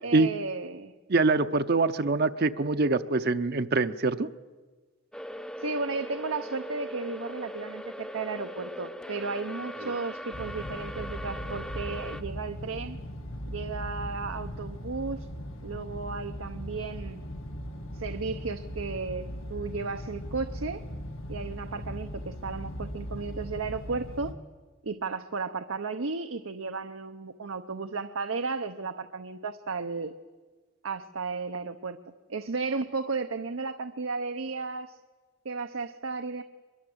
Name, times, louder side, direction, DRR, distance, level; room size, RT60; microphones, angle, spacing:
voice 1, 0.0-0.9 5.6-13.0 13.5-15.3 15.6-17.2 17.9-20.8 21.3-24.3 24.8-30.1 30.8-32.0 32.3-35.0 35.4-36.4, right 4 dB, 85° right, 8 dB, 0.8 m, -34 dB
voice 2, 1.1-4.3 9.8-9.9, right 3 dB, 50° right, 9 dB, 0.7 m, -24 dB
sound 1, 5.1-12.2, equal, 5° left, 0.6 m, -40 dB
sound 2, 10.3-24.3, equal, 80° left, 1.7 m, -39 dB
23.5 x 22.0 x 7.9 m, 1.4 s
head